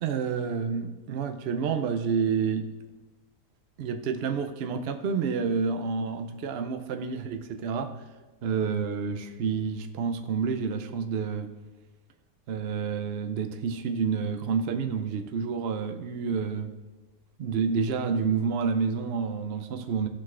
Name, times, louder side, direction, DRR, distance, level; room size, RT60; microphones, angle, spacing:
voice 1, 0.0-2.7 3.8-7.9 8.4-11.5 12.5-16.7 17.4-20.1, right 6 dB, 70° right, 6 dB, 0.6 m, -29 dB
15.0 x 6.2 x 2.4 m, 1.2 s
omnidirectional pair, 1.7 m